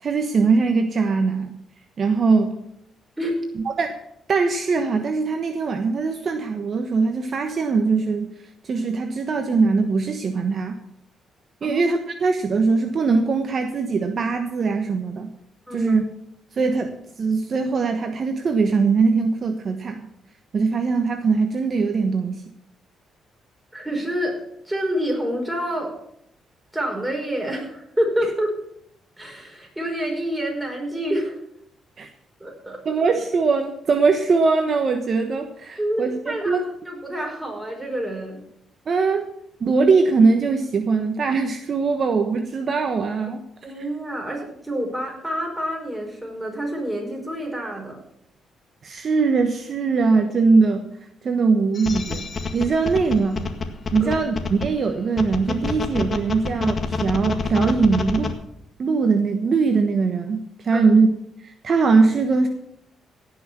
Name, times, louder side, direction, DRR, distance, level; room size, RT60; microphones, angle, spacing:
voice 1, 0.0-1.5 2.0-2.6 3.6-4.0 4.3-8.3 8.6-10.7 11.6-15.3 15.7-16.0 16.5-20.1 20.5-22.4 32.0-32.1 32.8-36.6 38.9-39.3 39.6-43.4 48.8-50.9 51.2-52.3 52.5-53.4 53.9-58.3 58.8-61.1 61.4-62.5, right 4 dB, 50° right, 6 dB, 1.2 m, -21 dB
voice 2, 23.7-26.0 26.7-28.5 29.2-31.4 32.4-33.0 35.8-38.4 43.6-48.0 54.0-54.1 60.7-60.9, equal, 10° right, 0 dB, 5.1 m, -28 dB
sound 1, 51.8-54.7 55.2-58.3, left 4 dB, 40° left, 1.7 m, -27 dB
17.0 x 6.1 x 7.1 m, 0.74 s
cardioid pair, 90°, 0 cm